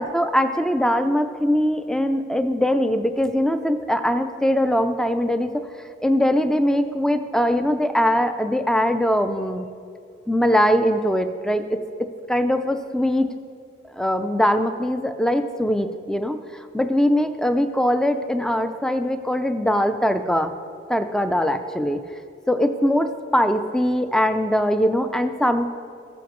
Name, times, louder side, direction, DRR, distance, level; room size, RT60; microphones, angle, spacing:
voice 1, 0.0-5.5 6.0-9.7 10.3-13.3 13.9-20.5 20.9-22.0 22.5-25.7, equal, 5° left, 9 dB, 0.4 m, -21 dB
15.0 x 7.1 x 3.0 m, 2.3 s
head